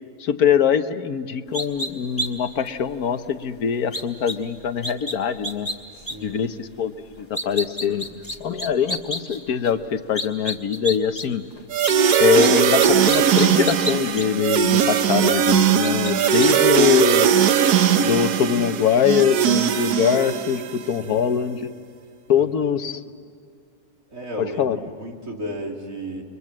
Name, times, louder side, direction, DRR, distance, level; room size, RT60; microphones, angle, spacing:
voice 1, 0.2-5.7 6.2-8.1 8.4-11.4 12.2-17.3 18.0-21.7 22.3-23.0 24.4-24.8, left 8 dB, 70° left, 9 dB, 1.5 m, -22 dB
sound 1, 1.5-1.9 2.2-2.3 2.7-2.8 3.9-4.3 4.8-5.1 5.4-5.7 6.1-6.2 7.2-9.7 10.1-11.2 11.5-14.2 14.9-15.0 15.8-16.1 16.4-16.5, equal, 10° left, 2.3 m, -29 dB
voice 2, 5.9-6.5 7.9-8.1 21.1-21.6 22.4-22.5 22.9-23.1 24.1-26.2, equal, 55° right, 0 dB, 3.5 m, -35 dB
sound 2, 11.7-20.8, right 8 dB, 75° right, 1.4 m, -19 dB
29.5 x 23.5 x 7.5 m, 2.3 s
omnidirectional pair, 1.7 m